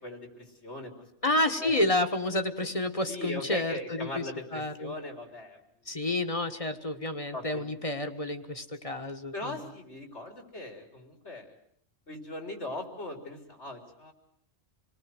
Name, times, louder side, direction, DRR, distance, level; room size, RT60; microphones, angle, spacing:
voice 1, 0.0-0.9 1.6-1.7 3.1-5.6 5.9-6.0 7.3-7.7 8.9-9.0 9.3-11.6 12.1-14.1, left 2 dB, 85° left, 4 dB, 4.2 m, -39 dB
voice 2, 1.2-4.9 5.9-9.5, left 1 dB, 30° left, 7 dB, 1.5 m, -30 dB
27.5 x 19.5 x 7.7 m, 0.66 s
omnidirectional pair, 1.1 m